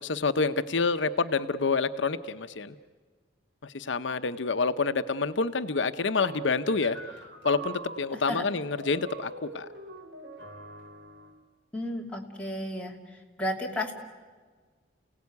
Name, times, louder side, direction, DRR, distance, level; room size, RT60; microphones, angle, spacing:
voice 1, 0.0-2.7 3.6-7.0 7.4-9.7, left 4 dB, 80° left, 10 dB, 0.8 m, -28 dB
sound 1, 6.1-11.4, right 3 dB, 65° right, 3.3 m, -43 dB
voice 2, 11.7-12.9 13.4-13.9, left 1 dB, 5° left, -2 dB, 2.7 m, -32 dB
29.5 x 18.0 x 9.5 m, 1.5 s
head